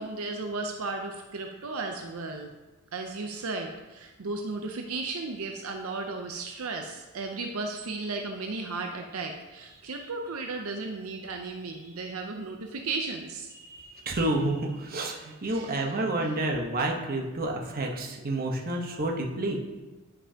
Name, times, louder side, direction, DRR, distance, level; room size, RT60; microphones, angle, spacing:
voice 1, 0.0-2.5 2.9-13.5 15.4-15.8, right 3 dB, 80° right, 3 dB, 0.6 m, -35 dB
voice 2, 13.6-19.6, right 1 dB, 45° right, 1 dB, 1.0 m, -29 dB
9.9 x 5.3 x 2.8 m, 1.1 s
head